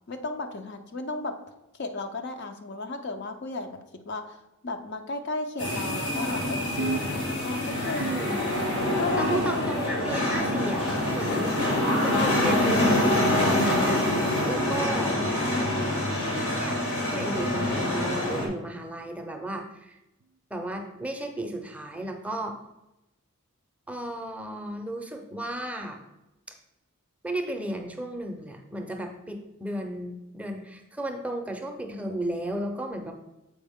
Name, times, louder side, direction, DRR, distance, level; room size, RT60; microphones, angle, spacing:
voice 1, 0.1-1.4 1.8-3.8 4.1-4.4 4.6-8.1 9.0-9.7 15.4-17.3, left 3 dB, 55° left, 6 dB, 0.6 m, -35 dB
sound 1, 5.6-18.5, left 1 dB, 75° left, 1.8 m, -26 dB
sound 2, 6.8-7.6 8.0-8.8 9.2-9.8 10.4-11.0 11.7-12.0 12.9-13.1 14.1-14.3 15.3-15.5 16.5-16.7 17.8-17.9 19.0-19.2 20.2-20.3 21.4-21.5, right 4 dB, 90° right, 0.4 m, -37 dB
voice 2, 7.8-8.4 9.2-11.6 12.0-14.1 14.4-15.2 16.2-16.8 17.1-20.0 20.5-22.6 23.9-26.0 27.2-33.1, right 1 dB, 5° right, 3 dB, 0.5 m, -34 dB
7.1 x 4.6 x 3.5 m, 0.93 s
head